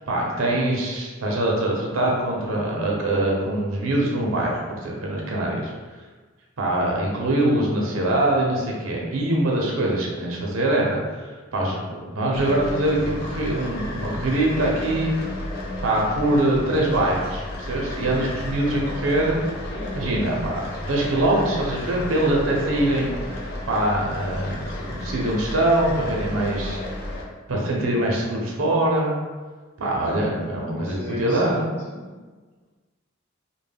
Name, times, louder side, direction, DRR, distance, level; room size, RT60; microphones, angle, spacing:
voice 1, 0.1-5.7 6.6-15.1 15.8-19.4 19.9-23.1 23.7-26.8 27.5-29.1 29.8-31.6, right 1 dB, 80° right, -2 dB, 0.5 m, -23 dB
sound 1, 12.3-27.2, left 1 dB, 50° left, 0.4 m, -33 dB
voice 2, 19.6-20.4 30.1-32.2, equal, 10° left, -11 dB, 0.9 m, -37 dB
2.1 x 2.1 x 3.3 m, 1.4 s
head